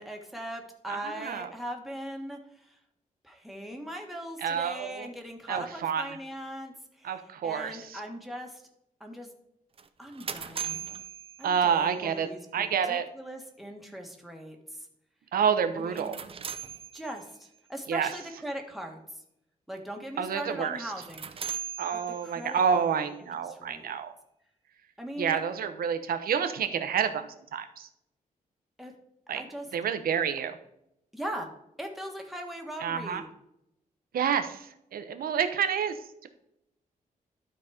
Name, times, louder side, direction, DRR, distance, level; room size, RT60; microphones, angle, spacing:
voice 1, 0.0-2.8 3.2-8.6 9.0-9.3 10.0-10.8 11.4-14.9 15.7-16.2 16.9-19.2 19.7-21.5 22.2-23.1 23.5-23.9 25.0-25.4 28.8-28.9 29.3-29.7 31.1-31.5 31.8-33.3, equal, ahead, 1 dB, 1.5 m, -40 dB
voice 2, 0.9-1.5 4.4-5.1 5.5-6.2 7.0-8.0 11.4-13.0 15.3-16.2 17.9-18.1 20.2-20.9 21.8-24.1 25.2-27.9 29.3-29.4 29.7-30.5 32.8-33.2 34.1-36.3, right 7 dB, 85° right, 9 dB, 0.9 m, -29 dB
sound 1, 9.8-12.0 15.8-17.5 20.8-22.6, right 8 dB, 40° right, 0.7 m, -39 dB
12.0 x 4.1 x 4.9 m, 0.81 s
wide cardioid pair, 130°, 15 cm